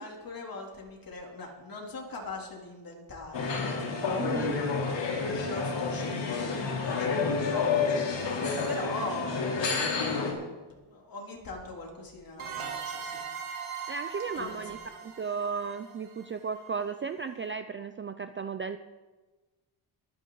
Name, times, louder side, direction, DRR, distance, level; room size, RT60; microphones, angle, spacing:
voice 1, 0.0-4.5 5.3-10.0 10.8-13.2 14.3-14.8, left 2 dB, 45° left, 0 dB, 3.1 m, -41 dB
sound 1, 3.3-10.3, left 4 dB, 60° left, 3.3 m, -29 dB
voice 2, 4.1-4.6 13.9-18.8, right 5 dB, 25° right, 10 dB, 0.4 m, -35 dB
sound 2, 12.4-16.9, right 7 dB, 80° right, 2.9 m, -40 dB
22.5 x 9.6 x 3.9 m, 1.2 s
cardioid pair, 135°, 49 cm